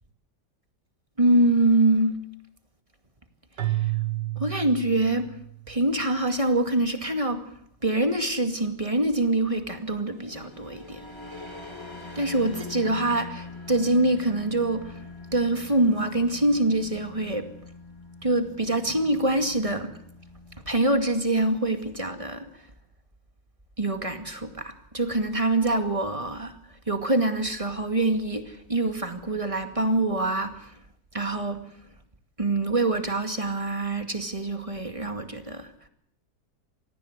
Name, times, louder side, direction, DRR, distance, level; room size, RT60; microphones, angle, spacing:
voice 1, 1.2-2.2 4.4-5.3 5.7-7.4 7.8-11.0 12.2-15.0 15.3-17.5 18.2-19.9 20.7-22.4 23.8-26.5 26.9-30.7 31.1-31.6 32.4-35.7, right 2 dB, 20° right, 7 dB, 2.3 m, -25 dB
Keyboard (musical), 3.6-5.8, right 16 dB, 90° right, 2.2 m, -30 dB
sound 1, 9.9-20.6, left 3 dB, 15° left, 4.8 m, -43 dB
26.5 x 19.0 x 8.2 m, 0.67 s
omnidirectional pair, 1.8 m